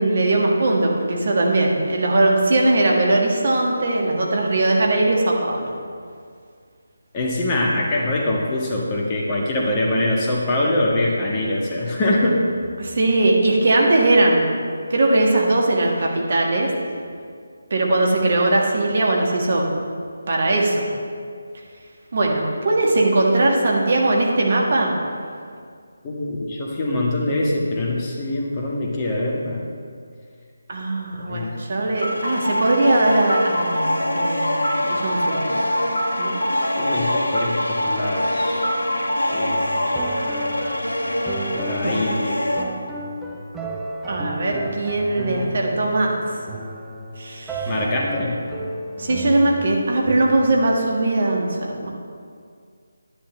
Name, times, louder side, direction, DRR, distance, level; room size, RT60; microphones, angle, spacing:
voice 1, 0.0-5.7 12.8-14.5 14.9-16.7 17.7-19.8 20.3-20.8 22.1-24.9 30.7-35.4 36.2-36.4 41.8-41.9 44.1-46.2 47.2-47.7 49.0-51.9, right 2 dB, 45° right, -1 dB, 1.7 m, -20 dB
voice 2, 7.1-12.4 26.0-29.6 31.1-31.5 36.8-38.7 39.3-39.9 41.5-42.4 47.7-48.4, left 1 dB, 20° left, -3 dB, 1.5 m, -23 dB
sound 1, 32.0-42.6, left 1 dB, 75° left, 1.5 m, -24 dB
sound 2, 39.9-50.4, right 1 dB, 5° right, 0.7 m, -33 dB
11.0 x 10.0 x 3.3 m, 2.1 s
figure-of-eight pair, 155°, 0 cm